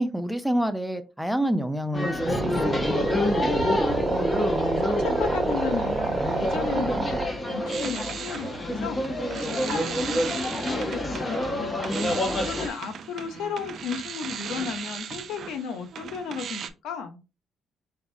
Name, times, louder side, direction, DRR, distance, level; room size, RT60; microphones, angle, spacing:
voice 1, 0.0-2.9, right 1 dB, ahead, 10 dB, 0.6 m, -28 dB
sound 1, 1.9-12.7, left 1 dB, 25° left, 1.0 m, -28 dB
sound 2, 2.2-7.3, right 3 dB, 30° right, 1.2 m, -27 dB
voice 2, 4.3-11.9 12.2-17.2, left 6 dB, 85° left, 8 dB, 0.8 m, -35 dB
sound 3, 7.3-16.7, right 7 dB, 60° right, 0.5 m, -37 dB
4.0 x 3.6 x 2.7 m, 0.29 s
cardioid pair, 90°, 0 cm